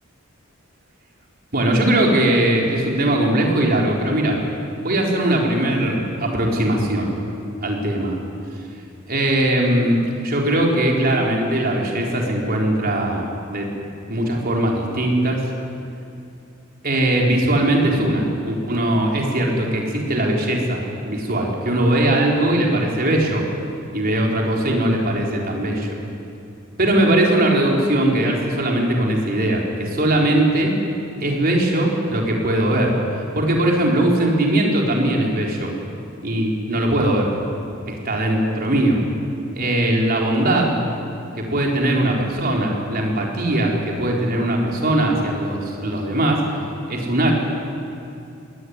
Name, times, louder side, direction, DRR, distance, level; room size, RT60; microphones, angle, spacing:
voice 1, 1.5-4.4 4.8-7.1 7.6-8.2 9.1-13.7 14.1-15.4 16.8-23.4 23.9-25.9 26.8-30.7 31.2-32.9 33.3-35.7 36.2-37.3 37.9-39.0 39.6-40.7 41.4-46.4 46.9-47.4, right 1 dB, 45° right, -1 dB, 4.3 m, -20 dB
22.0 x 18.5 x 9.7 m, 2.6 s
head